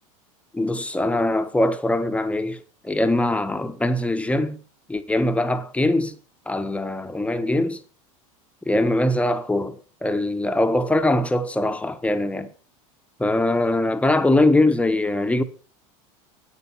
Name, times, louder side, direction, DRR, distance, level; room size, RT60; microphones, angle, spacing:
voice 1, 0.5-4.6 4.9-6.2 6.5-7.8 8.7-12.5 13.2-15.4, left 1 dB, 5° left, 1.2 m, -22 dB
9.6 x 9.0 x 5.7 m
hypercardioid pair, 105°, 18 cm